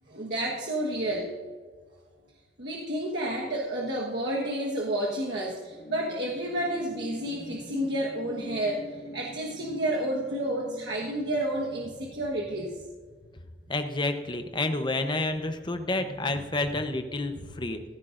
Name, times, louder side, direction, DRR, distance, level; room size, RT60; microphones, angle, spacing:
voice 1, 0.1-1.4 2.6-12.8 16.3-16.5 17.3-17.5, right 1 dB, 75° right, -3 dB, 1.4 m, -30 dB
sound 1, 5.6-13.4 13.8-13.9, equal, 50° left, 2.1 m, -44 dB
voice 2, 13.7-17.8, left 2 dB, 25° left, 8 dB, 0.8 m, -29 dB
15.5 x 13.5 x 2.6 m, 1.5 s
head